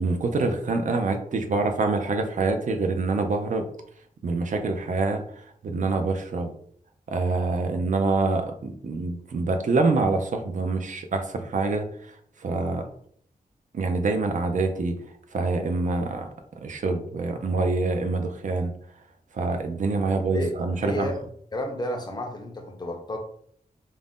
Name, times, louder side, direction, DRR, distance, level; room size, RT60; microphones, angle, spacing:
voice 1, 0.0-3.7 4.2-6.5 7.1-12.9 13.7-16.3 16.6-18.7 19.3-21.1, right 3 dB, 55° right, 6 dB, 0.4 m, -26 dB
voice 2, 20.3-21.2 21.5-23.2, left 1 dB, 25° left, 3 dB, 0.5 m, -31 dB
2.5 x 2.1 x 3.4 m, 0.63 s
wide cardioid pair, 125°, 16 cm